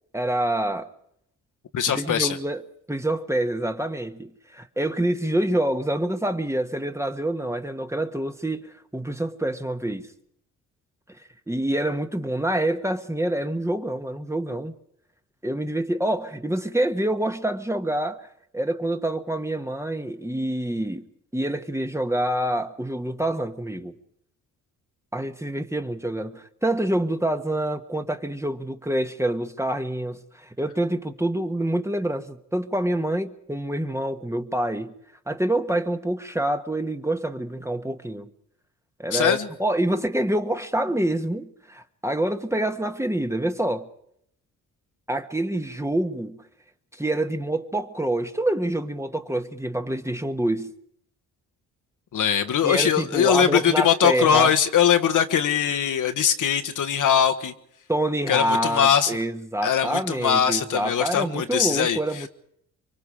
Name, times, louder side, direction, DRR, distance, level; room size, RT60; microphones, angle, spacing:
voice 1, 0.1-0.9 1.9-2.6 2.9-10.1 11.5-14.7 15.4-18.3 18.5-21.0 21.3-24.0 25.1-34.9 35.3-38.3 39.0-43.9 45.1-46.4 47.0-50.7 52.6-54.5 57.9-62.3, right 1 dB, 10° right, 1.4 m, -26 dB
voice 2, 1.7-2.4 39.1-39.5 52.1-57.5 58.3-59.2 59.6-62.3, left 8 dB, 60° left, 1.4 m, -21 dB
24.0 x 23.5 x 5.0 m
supercardioid pair, 55°, 34 cm